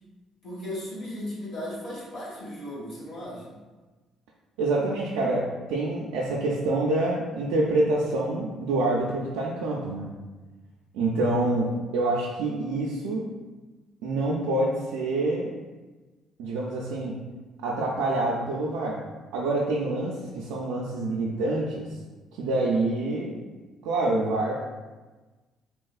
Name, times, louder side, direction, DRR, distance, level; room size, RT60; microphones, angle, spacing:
voice 1, 0.4-3.6, left 1 dB, 65° left, -6 dB, 1.2 m, -36 dB
voice 2, 4.6-10.1 10.9-13.3 14.0-15.5 16.4-17.2 17.6-19.0 19.3-21.9 22.3-23.4 23.8-24.5, right 2 dB, 85° right, -4 dB, 0.3 m, -26 dB
3.3 x 2.3 x 2.3 m, 1.2 s
supercardioid pair, 70°, 0 cm